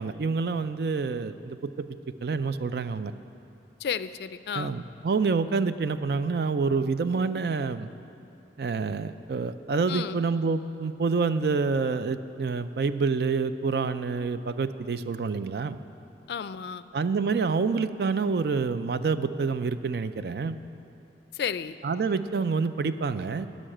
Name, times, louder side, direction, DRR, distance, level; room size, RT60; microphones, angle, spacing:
voice 1, 0.0-1.9 2.2-3.1 4.5-7.9 8.6-15.8 16.9-20.6 21.8-23.5, right 4 dB, 60° right, 12 dB, 0.4 m, -27 dB
voice 2, 3.8-4.8 9.9-10.2 16.3-16.8 21.3-21.8, left 7 dB, 65° left, 14 dB, 0.3 m, -32 dB
11.5 x 6.3 x 8.9 m, 2.7 s
head